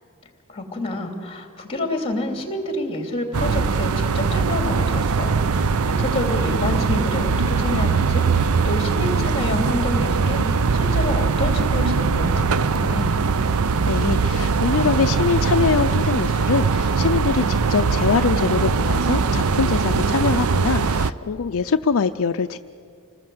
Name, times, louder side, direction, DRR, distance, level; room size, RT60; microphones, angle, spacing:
voice 1, 0.5-13.1, left 1 dB, 25° left, 4 dB, 2.9 m, -28 dB
sound 1, 3.3-21.1, right 5 dB, 70° right, 0.6 m, -21 dB
voice 2, 13.8-22.6, left 5 dB, 65° left, 9 dB, 0.5 m, -23 dB
27.5 x 19.5 x 7.8 m, 2.4 s
head